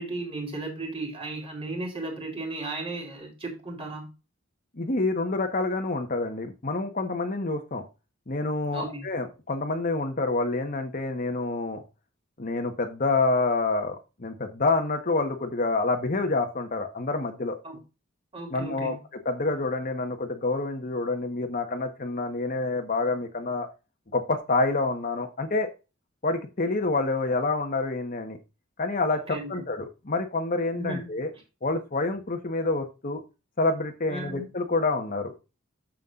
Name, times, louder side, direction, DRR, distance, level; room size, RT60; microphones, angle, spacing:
voice 1, 0.0-4.1 8.7-9.1 17.6-17.8 18.3-19.0 29.3-29.5 30.7-31.1 34.1-34.5, right 2 dB, 30° right, 3.5 m, -35 dB
voice 2, 4.8-7.8 8.3-11.8 12.4-17.6 18.5-23.7 24.1-25.7 26.2-28.4 28.8-31.3 31.6-33.2 33.6-35.3, left 3 dB, 45° left, 1.2 m, -27 dB
9.4 x 7.5 x 2.5 m
head